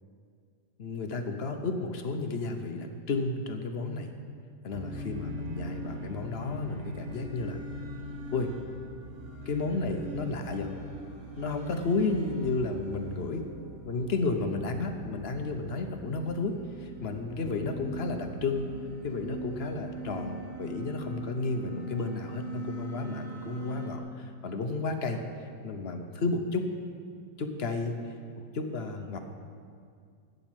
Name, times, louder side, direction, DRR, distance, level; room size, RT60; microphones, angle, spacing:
voice 1, 0.8-4.1 4.6-7.6 8.3-8.5 9.5-10.7 11.4-13.4 13.8-18.7 19.0-25.2 25.6-26.7 27.4-28.0 28.5-29.2, left 3 dB, 50° left, 6 dB, 0.8 m, -32 dB
sound 1, 4.7-24.0, right 1 dB, 35° right, 1.6 m, -41 dB
13.5 x 5.4 x 8.8 m, 2.2 s
omnidirectional pair, 1.8 m